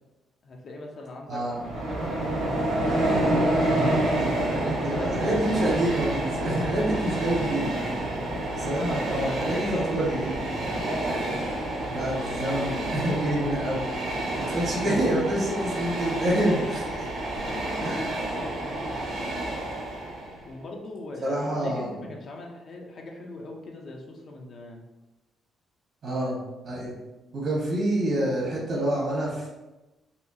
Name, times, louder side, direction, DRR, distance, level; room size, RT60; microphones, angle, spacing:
voice 1, 0.4-1.4 1.8-2.6 3.2-4.0 4.8-5.5 6.7-7.5 8.0-8.7 9.3-10.0 10.4-10.7 14.2-14.5 15.2-15.6 16.1-16.2 16.5-19.0 20.4-24.8 26.1-26.3, left 2 dB, 55° left, 0 dB, 0.6 m, -41 dB
voice 2, 1.3-1.6 4.1-7.8 8.5-10.3 11.9-13.9 14.5-16.8 17.8-18.2 21.2-21.9 26.0-26.4 26.6-26.9 27.3-29.5, right 1 dB, 60° right, -5 dB, 1.2 m, -27 dB
Train, 1.5-20.4, right 1 dB, 85° right, 1.4 m, -28 dB
4.2 x 2.3 x 2.7 m, 1.1 s
cardioid pair, 90°, 0 cm